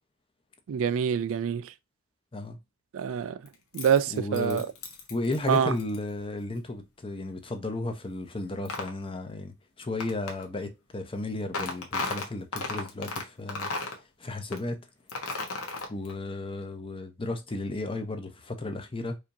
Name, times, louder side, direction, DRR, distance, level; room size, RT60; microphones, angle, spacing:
voice 1, 0.7-1.7 2.9-3.4 3.7-4.7 5.5-5.7, right 7 dB, 65° right, 0.3 m, -26 dB
sound 1, 3.5-6.0 8.6-8.9 10.0-10.5 11.5-13.2 13.5-14.0 14.5-14.6 15.1-16.1, left 3 dB, 75° left, 1.1 m, -34 dB
voice 2, 4.1-4.6 5.1-13.7 14.2-14.9 15.9-19.2, left 2 dB, 25° left, 0.7 m, -34 dB
4.9 x 2.8 x 2.6 m
head